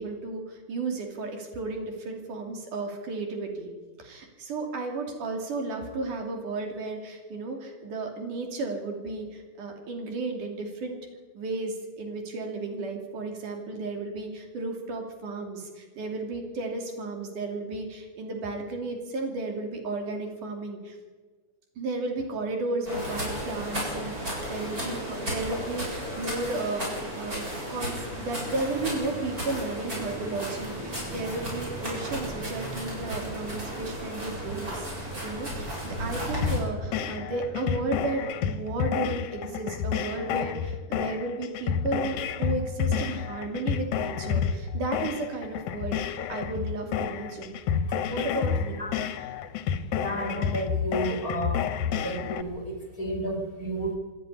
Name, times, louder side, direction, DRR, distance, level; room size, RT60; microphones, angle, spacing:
voice 1, 0.0-3.7 4.0-11.0 11.3-21.0 21.8-27.4 27.7-47.5 48.1-48.8, right 3 dB, 80° right, 3 dB, 4.4 m, -33 dB
sound 1, 22.9-36.6, equal, 25° right, 7.9 m, -34 dB
sound 2, 27.6-38.3, right 1 dB, 55° right, 6.6 m, -43 dB
sound 3, 36.4-52.4, left 7 dB, 70° left, 2.2 m, -30 dB
voice 2, 50.0-51.6 52.0-54.0, right 1 dB, 30° left, 3 dB, 3.0 m, -32 dB
27.0 x 9.9 x 9.9 m, 1.3 s
omnidirectional pair, 3.6 m